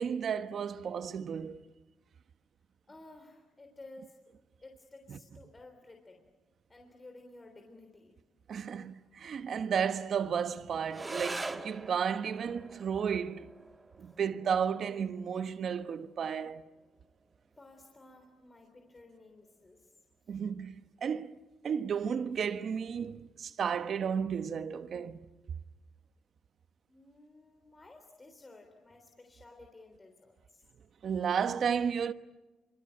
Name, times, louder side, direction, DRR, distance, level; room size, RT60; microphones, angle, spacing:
voice 1, 0.0-1.6 5.1-5.2 8.5-13.5 14.0-16.6 20.3-21.4 21.6-25.3 31.0-32.1, right 7 dB, 55° right, 1.1 m, -33 dB
voice 2, 2.9-4.2 4.6-6.2 6.7-8.1 14.0-14.1 17.6-19.9 26.9-30.6, left 2 dB, 25° left, 3.5 m, -54 dB
sound 1, 10.9-19.9, right 3 dB, 20° right, 1.9 m, -46 dB
25.5 x 24.5 x 8.9 m
cardioid pair, 90°, 0 cm